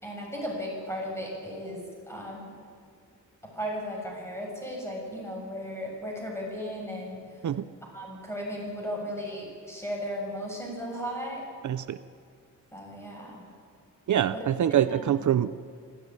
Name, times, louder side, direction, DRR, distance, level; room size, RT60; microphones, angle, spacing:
voice 1, 0.0-2.5 3.4-7.4 7.9-11.5 12.7-13.4 14.3-15.0 15.2-15.3, equal, 10° left, -1 dB, 7.0 m, -36 dB
voice 2, 11.6-12.0 14.1-15.8, right 10 dB, 70° right, 14 dB, 0.6 m, -25 dB
26.0 x 14.0 x 9.6 m, 2.1 s
wide cardioid pair, 160°, 31 cm